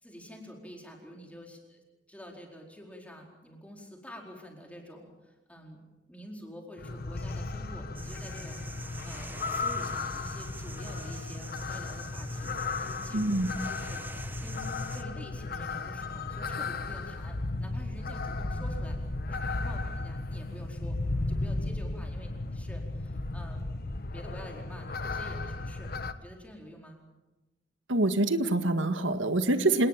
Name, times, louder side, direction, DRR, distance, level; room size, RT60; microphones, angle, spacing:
voice 1, 0.0-1.8 2.1-5.8 6.1-13.4 13.7-14.0 14.4-19.0 19.3-21.0 21.3-23.7 24.1-25.9 26.2-27.0, equal, 5° left, 1 dB, 4.5 m, -48 dB
sound 1, 6.8-26.1, left 3 dB, 50° left, 1.3 m, -35 dB
sound 2, 7.9-15.0, right 2 dB, 10° right, 1.4 m, -46 dB
voice 2, 13.1-13.5 27.9-29.9, right 2 dB, 90° right, 8 dB, 1.8 m, -25 dB
27.5 x 19.5 x 7.5 m, 1.1 s
head